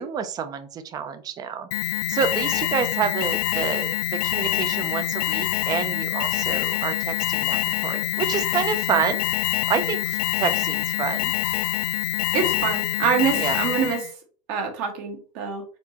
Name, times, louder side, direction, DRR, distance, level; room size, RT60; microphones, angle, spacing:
voice 1, 0.0-1.7 2.1-9.3 9.7-11.3 13.4-13.6, right 7 dB, 20° right, 10 dB, 0.4 m, -28 dB
Alarm, 1.7-14.1, left 15 dB, 85° left, 0.4 m, -25 dB
voice 2, 12.3-14.0 14.5-15.6, right 6 dB, 50° right, 4 dB, 1.2 m, -25 dB
4.3 x 4.1 x 2.8 m, 0.39 s
supercardioid pair, 160°, 19 cm